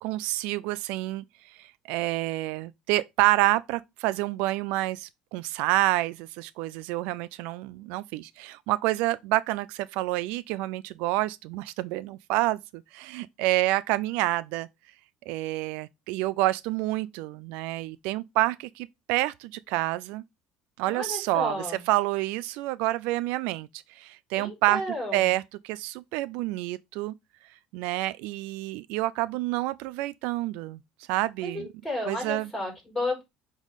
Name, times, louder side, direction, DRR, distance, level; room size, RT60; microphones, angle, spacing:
voice 1, 0.0-14.7 15.3-20.2 20.8-21.5 21.9-24.8 25.1-27.1 27.7-30.8 31.1-31.7 32.1-32.5, right 17 dB, 75° right, 0.3 m, -28 dB
voice 2, 20.9-21.8 24.4-25.3 31.4-33.2, left 1 dB, 5° left, 4.3 m, -32 dB
8.0 x 3.7 x 4.0 m
cardioid pair, 155°, 2 cm